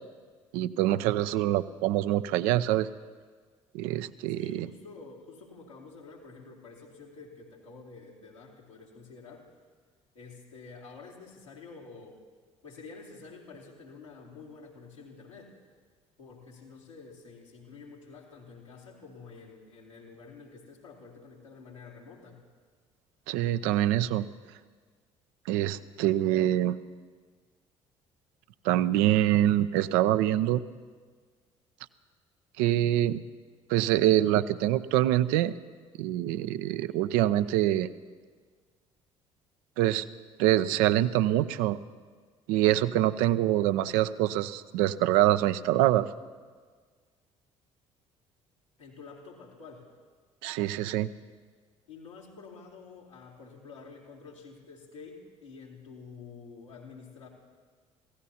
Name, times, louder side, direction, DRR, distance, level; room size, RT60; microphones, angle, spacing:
voice 1, 0.5-2.9 3.7-4.7 23.3-24.3 25.5-26.8 28.6-30.6 32.6-33.2 33.7-35.5 36.0-37.9 39.8-40.0 40.4-41.8 42.5-46.1 50.4-51.1, right 13 dB, 65° right, 13 dB, 0.5 m, -25 dB
voice 2, 4.3-9.5 10.1-12.2 12.6-15.5 16.2-22.4 48.8-49.9 51.9-57.3, left 4 dB, 90° left, -5 dB, 2.3 m, -49 dB
27.5 x 16.0 x 2.8 m, 1.5 s
figure-of-eight pair, 55°, 16 cm